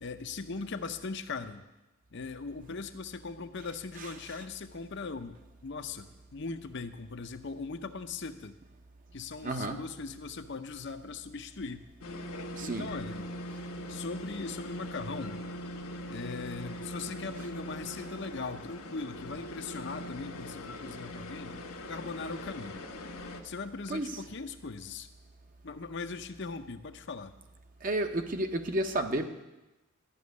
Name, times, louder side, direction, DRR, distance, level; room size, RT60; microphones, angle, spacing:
voice 1, 0.0-1.6 2.1-8.6 9.1-11.9 12.6-13.3 13.9-15.4 16.1-21.6 21.9-22.9 23.4-25.1 25.6-27.3, left 4 dB, 55° left, 8 dB, 0.7 m, -39 dB
voice 2, 9.4-9.8 12.5-12.9 23.9-24.1 27.8-29.3, right 1 dB, 40° right, 6 dB, 0.9 m, -31 dB
sound 1, 12.0-23.4, equal, 85° left, 1.2 m, -41 dB
13.0 x 6.3 x 9.5 m, 1.0 s
head